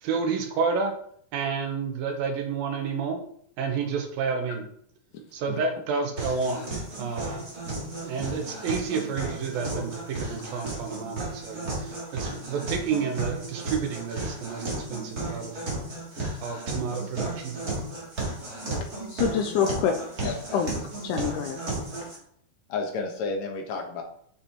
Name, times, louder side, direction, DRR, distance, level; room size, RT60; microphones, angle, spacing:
voice 1, 0.0-0.9 1.3-3.2 3.6-4.6 5.3-6.7 7.0-7.5 8.0-15.5 16.4-17.6, right 5 dB, 90° right, 3 dB, 3.2 m, -30 dB
sound 1, 6.2-22.2, right 2 dB, 30° right, 2.7 m, -34 dB
voice 2, 19.1-20.7 21.0-21.6, left 7 dB, 75° left, 5 dB, 2.1 m, -26 dB
voice 3, 22.7-24.0, left 4 dB, 60° left, 2 dB, 2.2 m, -31 dB
8.8 x 5.8 x 4.3 m, 0.64 s
omnidirectional pair, 4.0 m